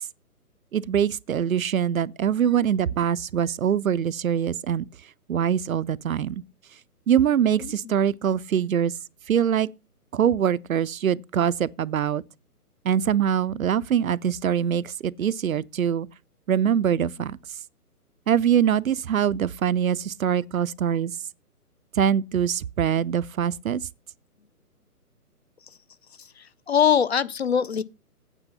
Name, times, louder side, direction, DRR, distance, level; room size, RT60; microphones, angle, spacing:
voice 1, 0.7-4.9 5.3-6.4 7.1-8.9 9.3-9.7 10.1-12.2 12.9-16.1 16.5-17.4 18.3-21.1 22.0-23.8, right 9 dB, 65° right, 0.5 m, -23 dB
voice 2, 7.6-8.0 26.2-27.8, left 8 dB, 45° left, 0.5 m, -23 dB
9.0 x 7.4 x 5.6 m
figure-of-eight pair, 135°, 46 cm